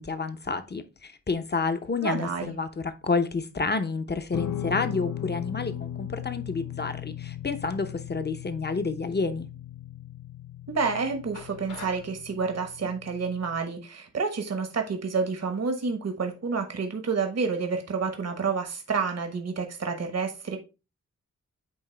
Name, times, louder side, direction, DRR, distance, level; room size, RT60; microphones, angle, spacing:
voice 1, 0.0-9.5, left 4 dB, 35° left, 0.9 m, -29 dB
voice 2, 2.0-2.5 10.7-20.6, right 5 dB, 55° right, 1.2 m, -29 dB
Guitar, 4.3-13.6, left 11 dB, 70° left, 0.5 m, -38 dB
sound 1, 11.3-12.1, left 3 dB, 85° left, 4.1 m, -44 dB
8.8 x 3.3 x 3.3 m
cardioid pair, 70°, 31 cm